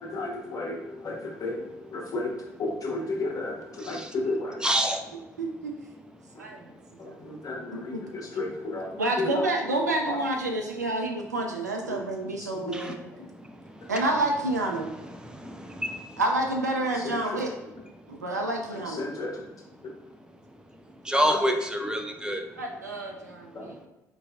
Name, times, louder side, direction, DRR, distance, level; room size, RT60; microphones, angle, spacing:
voice 1, 0.0-2.3 2.6-4.8 6.3-6.4 7.0-8.9 9.2-9.4 10.1-10.2 12.6-12.8 16.9-17.4 18.9-19.4 21.1-21.2 23.5-23.9, left 2 dB, 40° left, -1 dB, 1.1 m, -33 dB
voice 2, 4.6-5.0 12.7-12.9 21.1-22.4, equal, 10° right, 4 dB, 0.6 m, -26 dB
voice 3, 5.4-5.7 6.4-6.6 7.1-7.2 7.7-8.0 9.0-13.3 13.9-14.9 16.2-17.5 18.1-19.1 22.6-23.7, right 2 dB, 90° right, 1 dB, 0.4 m, -29 dB
4.6 x 3.0 x 2.4 m, 0.98 s
figure-of-eight pair, 50°, 9 cm